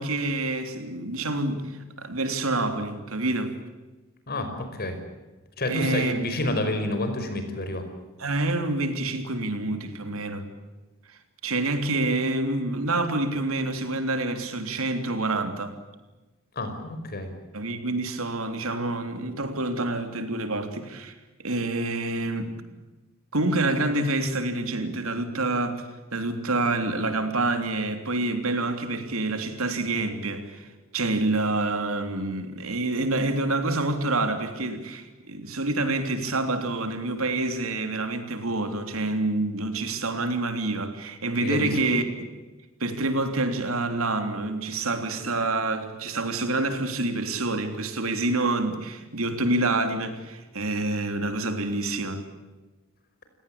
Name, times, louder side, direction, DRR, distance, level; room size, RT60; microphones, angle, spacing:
voice 1, 0.0-3.6 5.7-6.2 8.2-10.5 11.1-15.8 17.5-21.1 21.4-22.5 23.3-42.3 42.8-52.2, right 2 dB, 75° right, 3.4 m, -27 dB
voice 2, 4.3-5.0 5.6-7.9 16.6-17.3 41.4-41.8, left 1 dB, 50° left, 5.4 m, -29 dB
29.5 x 18.0 x 8.7 m
head